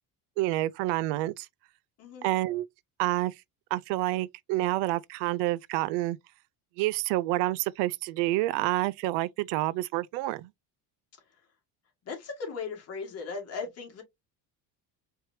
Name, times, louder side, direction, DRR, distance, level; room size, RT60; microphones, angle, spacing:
voice 1, 0.4-1.5 2.2-2.7 3.0-3.3 3.7-6.2 6.8-10.5, right 17 dB, 90° right, 0.5 m, -28 dB
voice 2, 12.1-14.0, left 5 dB, 35° left, 2.0 m, -37 dB
4.6 x 3.3 x 2.7 m
cardioid pair, 170°, 40 cm